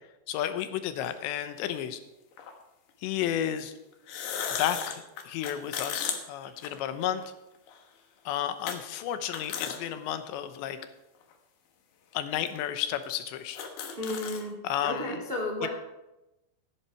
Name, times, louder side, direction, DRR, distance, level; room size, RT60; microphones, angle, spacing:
voice 1, 0.3-2.0 3.0-3.7 4.6-7.2 8.3-10.8 12.1-13.6 14.6-15.2 15.6-15.7, left 10 dB, 80° left, 10 dB, 3.1 m, -32 dB
sound 1, 1.0-1.1 2.4-2.5 3.9-7.3 7.7-7.8 8.7-8.8 9.2-9.8 10.3-10.4 11.2-11.3 12.1-12.2 12.5-12.6 13.0-13.1 13.4-14.4, left 7 dB, 65° left, 2.4 m, -35 dB
voice 2, 14.0-14.5 14.8-15.7, left 1 dB, 85° right, 1 dB, 0.5 m, -32 dB
14.5 x 10.5 x 4.7 m, 0.96 s
omnidirectional pair, 5.2 m